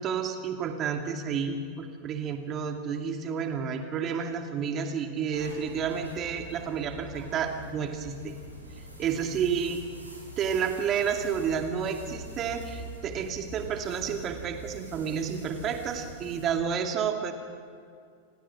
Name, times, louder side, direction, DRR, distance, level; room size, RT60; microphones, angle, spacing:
voice 1, 0.0-8.3 9.0-9.8 10.4-17.3, right 7 dB, 30° right, 4 dB, 2.4 m, -30 dB
sound 1, 5.3-16.5, right 1 dB, 85° right, 7.3 m, -44 dB
30.0 x 16.5 x 6.2 m, 2.3 s
figure-of-eight pair, 90°, 0 cm